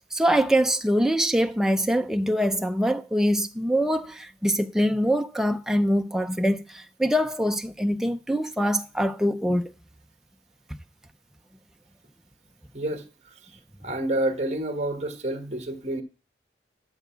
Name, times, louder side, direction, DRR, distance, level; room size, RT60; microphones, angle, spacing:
voice 1, 0.1-9.7, equal, 5° right, 0.4 m, -24 dB
voice 2, 12.7-16.0, right 1 dB, 40° right, 1.4 m, -29 dB
12.5 x 4.5 x 7.1 m
head